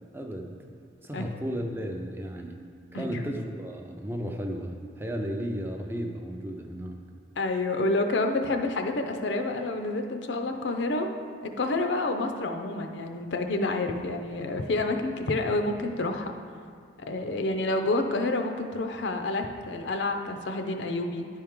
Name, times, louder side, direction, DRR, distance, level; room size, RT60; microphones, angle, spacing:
voice 1, 0.1-0.6 1.0-2.6 2.9-7.0, equal, 10° right, 2 dB, 0.4 m, -34 dB
voice 2, 7.4-11.2 11.4-16.3 17.1-21.3, left 2 dB, 70° left, 5 dB, 0.5 m, -28 dB
10.0 x 4.5 x 3.6 m, 2.3 s
head